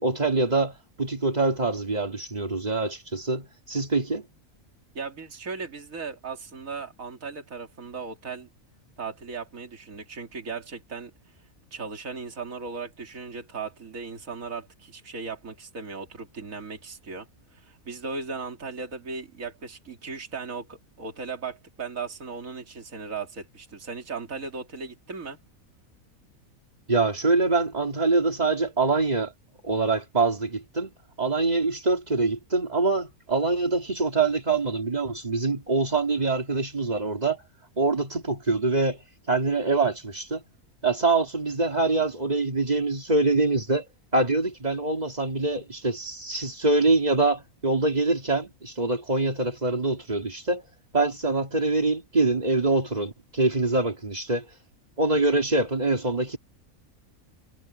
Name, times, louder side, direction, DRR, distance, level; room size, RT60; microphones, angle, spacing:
voice 1, 0.0-4.2 26.9-29.3 29.6-30.9 31.2-37.4 37.8-39.0 39.3-40.4 40.8-43.9 44.1-50.6 50.9-54.5 55.0-56.4, right 3 dB, 30° right, 2.8 m, -24 dB
voice 2, 4.9-8.5 9.0-11.1 11.7-25.4, right 4 dB, 70° right, 3.0 m, -37 dB
omnidirectional pair, 1.5 m